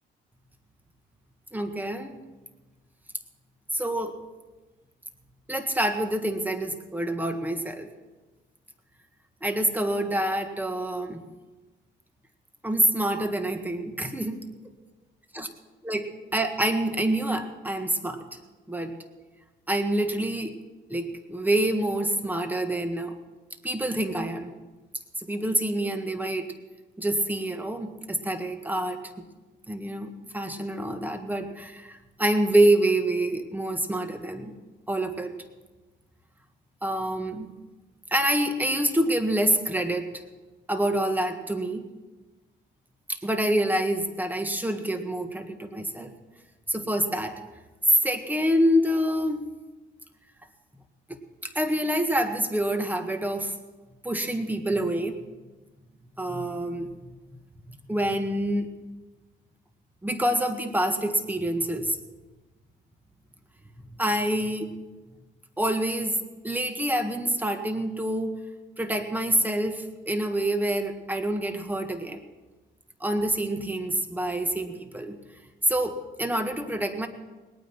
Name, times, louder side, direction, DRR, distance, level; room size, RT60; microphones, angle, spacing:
voice 1, 1.5-2.2 3.7-4.1 5.5-7.9 9.4-11.2 12.6-14.4 15.3-15.5 15.9-16.1 16.3-18.2 18.7-18.9 19.7-20.5 20.9-23.2 23.6-24.5 25.2-26.5 27.0-29.3 29.7-34.5 34.9-35.3 36.8-37.5 38.1-40.1 40.7-41.8 43.1-46.1 46.7-47.4 48.0-49.5 51.4-53.5 54.0-55.2 56.2-57.1 57.6-58.7 60.0-62.0 63.8-64.7 65.6-66.2 66.4-68.4 68.8-72.2 73.0-75.2 75.7-77.1, right 1 dB, 10° right, 6 dB, 1.7 m, -27 dB
19.5 x 9.4 x 6.1 m, 1.2 s
cardioid pair, 90°, 20 cm